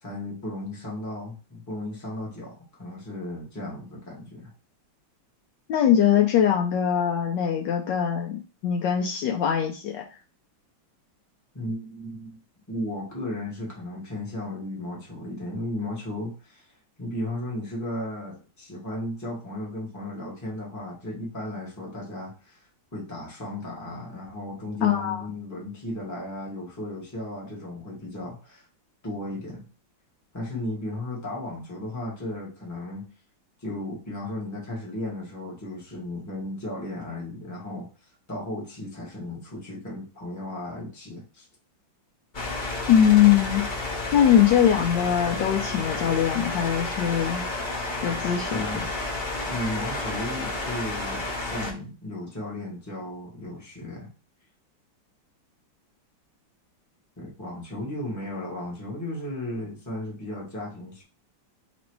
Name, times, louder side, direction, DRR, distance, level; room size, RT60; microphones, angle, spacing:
voice 1, 0.0-4.5 11.5-12.4 12.7-28.7 29.0-29.6 30.3-33.1 33.6-37.9 38.3-41.5 48.5-48.9 49.5-54.1 57.2-61.0, left 1 dB, 10° left, -3 dB, 1.0 m, -35 dB
voice 2, 5.7-10.0 24.8-25.3 42.9-43.7 44.1-47.4 48.0-48.7, left 9 dB, 75° left, 2 dB, 1.2 m, -21 dB
sound 1, 42.3-51.7, left 2 dB, 55° left, 0.5 m, -31 dB
3.1 x 3.0 x 4.5 m, 0.34 s
omnidirectional pair, 2.1 m